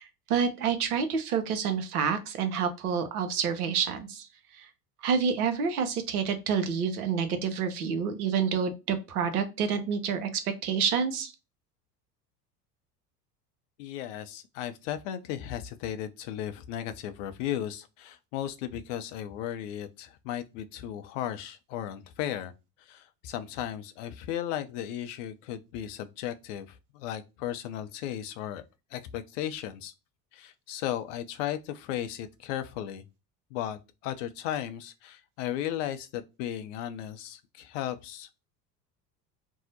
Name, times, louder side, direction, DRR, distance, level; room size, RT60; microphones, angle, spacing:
voice 1, 0.0-4.3 4.6-4.7 5.0-11.3, right 6 dB, 70° right, 0.8 m, -28 dB
voice 2, 13.8-22.5 22.8-28.6 28.9-29.9 30.3-33.0 33.5-38.5, left 11 dB, 50° left, 0.6 m, -35 dB
2.7 x 2.0 x 4.0 m
figure-of-eight pair, 70°, 48 cm